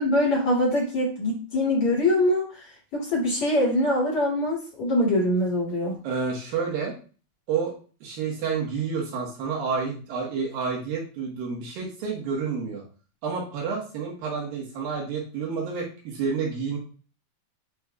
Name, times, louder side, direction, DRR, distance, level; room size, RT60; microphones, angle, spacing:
voice 1, 0.0-2.5 2.9-5.9, left 1 dB, 40° left, -5 dB, 3.7 m, -23 dB
voice 2, 6.0-6.9 7.5-7.7 8.0-12.8 13.2-16.8, right 5 dB, 70° right, -1 dB, 3.1 m, -29 dB
8.2 x 5.0 x 2.4 m, 0.37 s
omnidirectional pair, 4.5 m